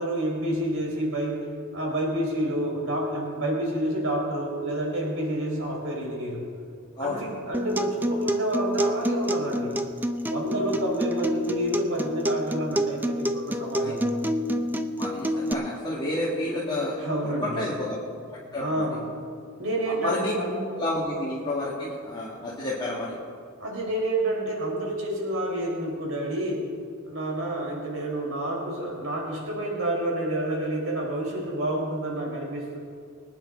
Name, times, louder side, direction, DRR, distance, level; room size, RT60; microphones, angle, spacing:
voice 1, 0.0-1.5 1.7-6.5 7.0-9.8 10.3-14.1 17.0-17.7 18.6-19.1 19.6-20.7 21.1-21.2 23.6-26.7 27.1-32.8, right 1 dB, 65° right, -1 dB, 4.0 m, -29 dB
Acoustic guitar, 7.5-15.5, equal, 10° right, 0.5 m, -28 dB
voice 2, 15.0-18.0 18.5-18.9 20.0-20.3 20.7-23.2, left 1 dB, 20° left, -8 dB, 2.1 m, -30 dB
24.5 x 10.0 x 3.8 m, 2.2 s
head